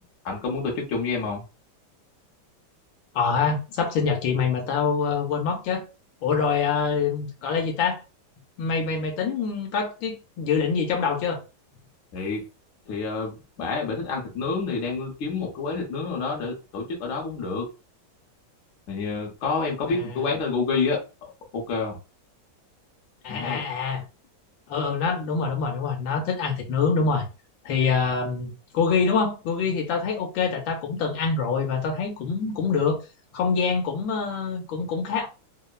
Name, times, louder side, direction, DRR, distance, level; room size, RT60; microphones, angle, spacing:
voice 1, 0.2-1.4 12.1-12.4 12.9-17.7 18.9-21.0 21.5-22.0 23.3-23.6, left 4 dB, 50° left, 0.9 m, -28 dB
voice 2, 3.1-5.8 6.2-8.0 8.6-11.4 19.9-20.0 23.2-24.0 24.7-27.2 27.6-33.0 33.3-35.3, left 5 dB, 80° left, 1.4 m, -25 dB
3.5 x 2.0 x 2.3 m
omnidirectional pair, 2.2 m